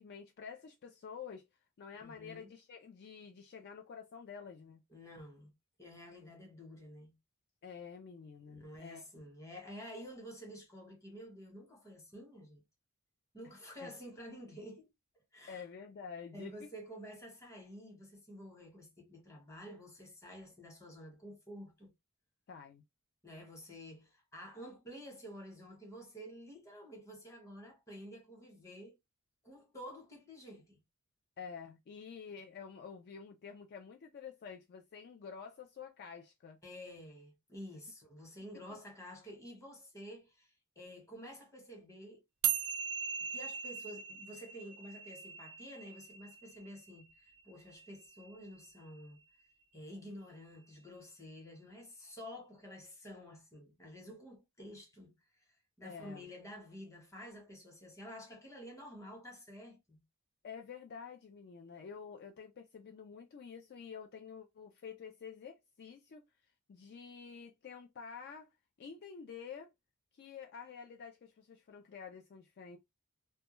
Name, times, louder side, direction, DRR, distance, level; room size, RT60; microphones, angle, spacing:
voice 1, 0.0-1.4 1.8-4.8 7.6-9.0 13.8-13.9 15.5-16.7 22.5-22.8 31.4-36.6 55.8-56.3 60.4-66.2 66.7-68.5 68.8-69.7 70.1-72.8, left 6 dB, 50° left, 0.3 m, -49 dB
voice 2, 2.0-2.5 4.9-5.5 5.8-7.1 8.5-12.6 13.3-14.9 15.3-15.6 16.3-21.9 23.2-29.0 29.4-30.8 36.6-42.2 43.3-49.2 49.7-60.0, equal, 15° left, 1.0 m, -50 dB
sound 1, 42.4-49.0, right 8 dB, 60° right, 0.4 m, -40 dB
2.2 x 2.1 x 2.9 m
head